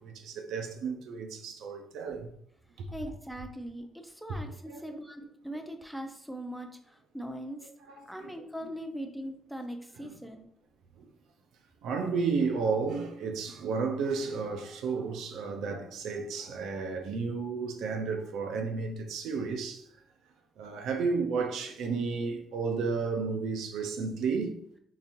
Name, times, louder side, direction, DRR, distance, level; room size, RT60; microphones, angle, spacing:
voice 1, 0.0-2.3 2.8-2.9 4.3-4.8 7.9-8.3 10.0-10.1 11.8-19.8 20.6-24.5, right 5 dB, 80° right, 0.5 m, -32 dB
voice 2, 2.9-7.7 8.1-10.5, equal, ahead, 0.5 m, -40 dB
3.8 x 2.8 x 2.6 m
cardioid pair, 90°, 0 cm